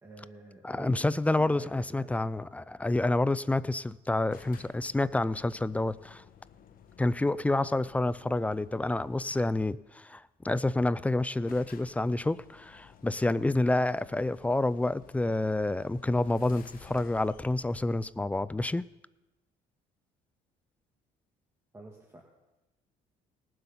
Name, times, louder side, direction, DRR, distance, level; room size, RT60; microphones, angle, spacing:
voice 1, 0.0-2.2 21.7-22.2, right 2 dB, 15° right, -1 dB, 1.8 m, -48 dB
voice 2, 0.6-6.2 7.0-18.8, left 2 dB, 10° left, 18 dB, 0.3 m, -28 dB
sound 1, 4.3-9.8 10.8-10.9 11.1-11.2 11.4-18.9, left 7 dB, 55° left, 1.2 m, -56 dB
18.5 x 7.8 x 5.6 m, 1.0 s
cardioid pair, 110°, 17 cm